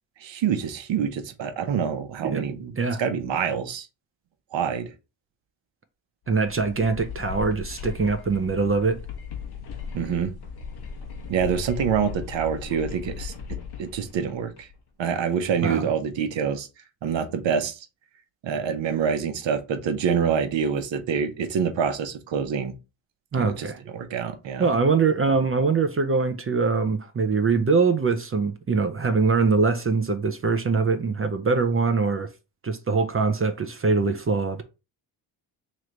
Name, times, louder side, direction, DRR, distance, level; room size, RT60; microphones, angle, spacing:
voice 1, 0.2-2.7 3.0-3.9 4.5-4.9 9.9-10.3 11.3-13.3 13.8-14.7 15.0-16.7 17.0-17.8 18.4-22.7 23.4-23.7 23.9-24.7, right 7 dB, 70° right, 1.0 m, -26 dB
sound 1, 6.3-14.8, left 6 dB, 55° left, 1.0 m, -37 dB
voice 2, 6.3-9.0 15.6-15.9 23.3-23.8 24.6-32.3 32.6-34.6, right 4 dB, 30° right, 0.6 m, -23 dB
3.1 x 3.1 x 3.8 m
cardioid pair, 80°, 47 cm